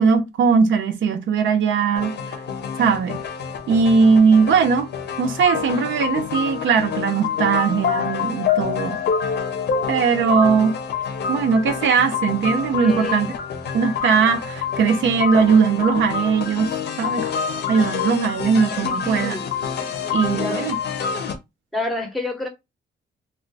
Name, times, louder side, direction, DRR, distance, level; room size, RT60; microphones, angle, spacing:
voice 1, 0.0-2.2 2.8-3.2 3.7-4.9 5.2-9.0 9.9-10.7 11.3-13.3 13.7-16.7 17.0-17.3 17.7-19.4 20.1-20.8, right 5 dB, 75° right, 0.5 m, -19 dB
sound 1, 1.9-21.4, left 7 dB, 60° left, 0.6 m, -27 dB
voice 2, 12.8-13.3 19.1-19.5 20.0-20.7 21.7-22.5, left 2 dB, ahead, 0.6 m, -29 dB
2.4 x 2.2 x 3.9 m
wide cardioid pair, 170°, 20 cm